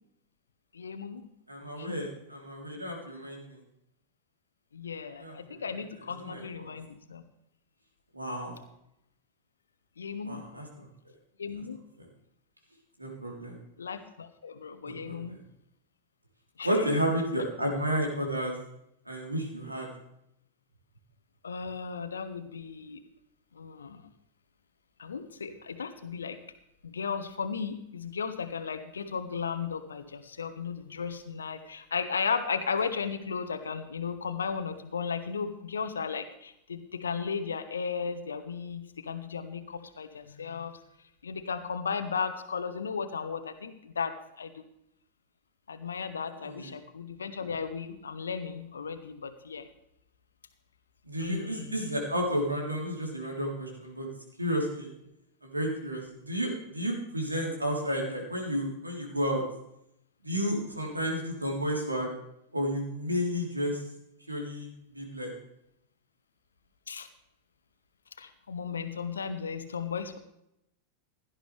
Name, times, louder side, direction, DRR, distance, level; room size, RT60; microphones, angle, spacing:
voice 1, 0.7-1.2 1.8-2.0 4.7-7.2 10.0-10.4 11.4-11.8 13.8-15.4 16.6-16.9 21.4-23.0 23.5-24.1 25.0-26.4 26.8-40.7 41.2-44.6 45.7-49.7 51.2-51.8 66.9-67.1 68.2-70.2, left 6 dB, 70° left, 9 dB, 1.1 m, -35 dB
voice 2, 1.5-3.6 5.2-5.8 6.2-6.7 8.1-8.6 10.2-10.9 13.0-13.6 14.8-15.3 16.6-18.6 19.1-19.9 46.4-46.7 51.1-54.1 54.4-54.9 55.4-59.4 60.2-62.1 62.5-63.8 64.3-64.7 64.9-65.3, equal, 85° right, 0 dB, 3.6 m, -32 dB
17.0 x 11.5 x 3.4 m, 0.79 s
figure-of-eight pair, 90°, 0 cm